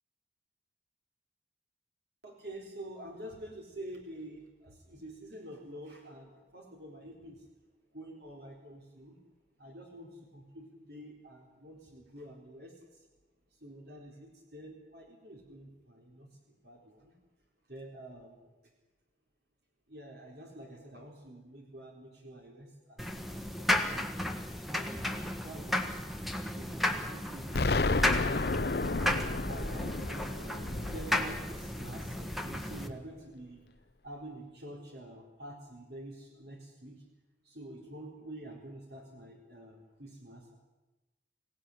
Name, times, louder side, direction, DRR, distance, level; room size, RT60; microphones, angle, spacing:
voice 1, 2.2-7.5 7.9-9.2 9.6-13.1 13.5-17.1 17.7-18.5 19.9-24.1 24.7-26.1 26.5-28.3 29.5-30.6 30.9-33.6 34.0-37.0 37.4-40.5, right 1 dB, 60° right, 0 dB, 3.9 m, -48 dB
sound 1, 23.0-32.9, left 1 dB, ahead, 1.5 m, -34 dB
Explosion, 27.5-32.4, left 3 dB, 55° left, 0.8 m, -32 dB
25.0 x 17.0 x 9.8 m, 1.1 s
head